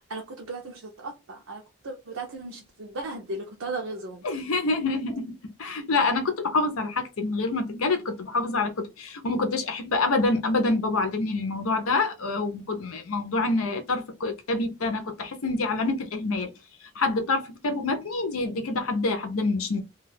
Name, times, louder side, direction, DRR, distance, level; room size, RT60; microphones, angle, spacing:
voice 1, 0.1-4.2, right 2 dB, 80° right, 0.6 m, -36 dB
voice 2, 4.2-16.5 16.9-19.8, left 3 dB, 90° left, 0.7 m, -27 dB
2.3 x 2.3 x 3.3 m
head